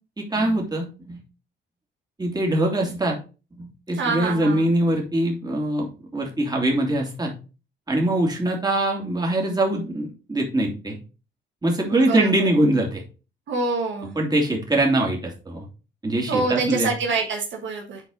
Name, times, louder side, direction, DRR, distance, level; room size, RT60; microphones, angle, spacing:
voice 1, 0.2-1.2 2.2-3.2 3.6-7.3 7.9-11.0 11.6-13.0 14.2-15.7 16.0-16.9, right 1 dB, 20° right, 0 dB, 2.6 m, -23 dB
voice 2, 4.0-4.6 11.9-12.5 13.5-14.1 16.3-18.0, right 3 dB, 70° right, 1 dB, 1.5 m, -26 dB
8.0 x 4.2 x 3.9 m, 0.33 s
cardioid pair, 90°, 20 cm